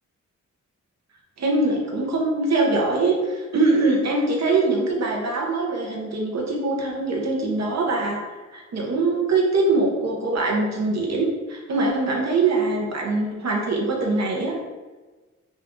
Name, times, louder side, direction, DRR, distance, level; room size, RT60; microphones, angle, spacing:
voice 1, 1.4-8.2 8.5-14.6, right 3 dB, 65° right, -1 dB, 0.8 m, -23 dB
3.6 x 2.5 x 3.6 m, 1.3 s
wide cardioid pair, 155°, 29 cm